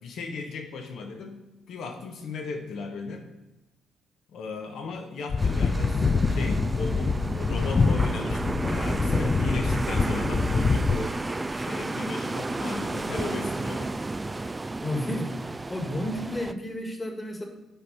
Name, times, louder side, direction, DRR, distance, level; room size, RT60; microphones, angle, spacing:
voice 1, 0.0-3.2 4.3-11.2 11.5-13.9, left 4 dB, 70° left, 4 dB, 1.3 m, -36 dB
sound 1, 5.3-11.0, left 4 dB, 35° left, 0.5 m, -25 dB
sound 2, 5.4-16.5, right 2 dB, 20° right, 0.4 m, -32 dB
voice 2, 14.8-17.4, left 1 dB, 20° left, 3 dB, 1.7 m, -32 dB
8.4 x 4.7 x 5.6 m, 1.0 s
cardioid pair, 90°, 0 cm